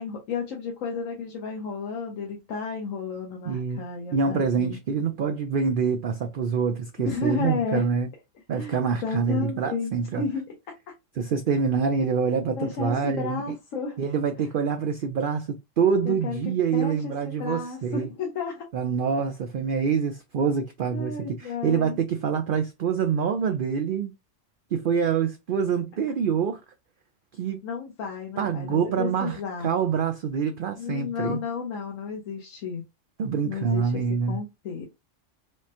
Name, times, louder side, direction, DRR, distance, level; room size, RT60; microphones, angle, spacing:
voice 1, 0.0-4.8 7.0-7.9 8.5-10.4 12.5-14.0 16.0-16.4 16.7-18.6 20.9-22.0 27.6-29.7 30.7-32.8 33.4-34.0 34.3-34.9, left 5 dB, 85° left, 1.3 m, -32 dB
voice 2, 3.5-3.8 4.1-8.1 8.5-10.2 11.2-13.4 14.0-18.1 18.7-24.1 24.7-26.6 27.3-27.6 28.4-31.4 33.2-34.4, right 6 dB, 65° right, 0.5 m, -26 dB
4.9 x 2.1 x 2.8 m
omnidirectional pair, 1.3 m